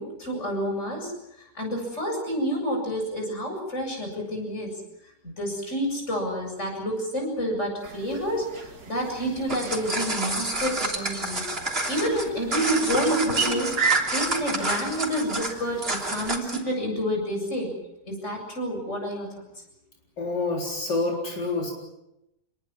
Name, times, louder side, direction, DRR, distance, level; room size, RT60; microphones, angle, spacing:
voice 1, 0.0-4.7 5.2-11.4 11.9-17.7 18.0-19.3, equal, 40° left, 1 dB, 8.2 m, -29 dB
sound 1, 7.8-16.4, right 5 dB, 65° right, 2.6 m, -34 dB
sound 2, 9.3-16.7, right 2 dB, 35° right, 3.5 m, -29 dB
voice 2, 20.2-21.7, left 3 dB, 80° left, -1 dB, 4.6 m, -27 dB
27.5 x 21.5 x 7.4 m, 0.88 s
omnidirectional pair, 1.8 m